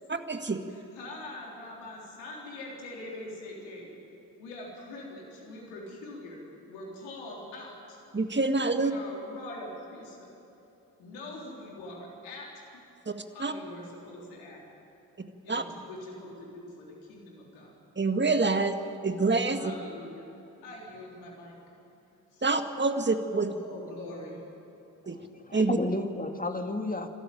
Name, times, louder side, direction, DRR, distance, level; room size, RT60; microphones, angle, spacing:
voice 1, 0.1-0.7 8.1-8.9 13.1-13.2 13.4-13.5 15.5-15.6 18.0-18.8 19.0-19.7 22.4-23.5 25.1-25.2 25.5-25.8, right 3 dB, 25° right, 7 dB, 1.9 m, -26 dB
voice 2, 0.7-3.9 4.4-6.4 6.7-8.0 8.7-10.3 11.0-12.5 13.3-14.6 15.4-17.7 19.5-20.2 20.6-21.5 22.3-22.4 23.5-24.4, left 2 dB, 80° left, -2 dB, 3.8 m, -43 dB
voice 3, 25.0-27.1, left 2 dB, 15° left, 5 dB, 2.4 m, -33 dB
28.5 x 13.0 x 9.2 m, 2.9 s
hypercardioid pair, 40°, 47 cm